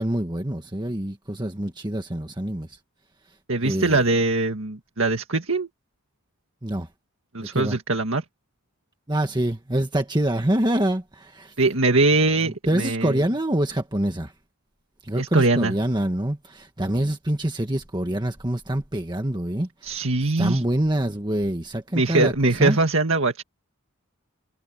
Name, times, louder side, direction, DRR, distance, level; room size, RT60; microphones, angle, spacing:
voice 1, 0.0-2.7 3.6-4.0 6.6-6.9 7.4-7.8 9.1-11.5 12.7-14.3 15.0-20.0 20.4-22.8, right 1 dB, 20° right, 1.6 m, -25 dB
voice 2, 3.5-5.7 7.3-8.2 11.6-13.2 15.2-15.7 19.8-20.6 21.9-23.4, right 3 dB, 60° right, 2.0 m, -22 dB
head